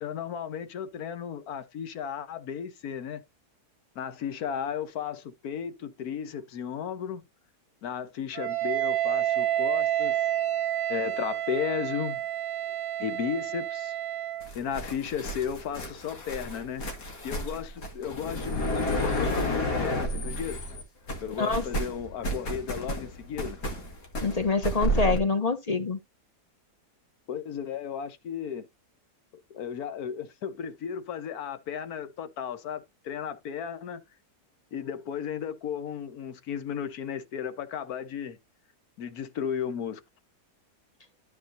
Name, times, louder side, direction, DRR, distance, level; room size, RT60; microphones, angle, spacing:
voice 1, 0.0-3.2 3.9-7.2 7.8-10.3 10.9-12.2 13.0-13.9 14.5-16.9 17.2-20.6 21.2-23.6 27.3-28.7 29.5-34.0 34.7-38.4 39.0-40.0, left 8 dB, 65° left, 1.5 m, -34 dB
Wind instrument woodwind instrument, 8.4-14.5, right 12 dB, 65° right, 1.0 m, -29 dB
sound 1, 14.4-20.8 21.1-25.2, equal, 85° left, 2.7 m, -31 dB
voice 2, 24.2-26.0, left 4 dB, 35° left, 0.7 m, -26 dB
13.5 x 4.5 x 2.7 m
omnidirectional pair, 1.7 m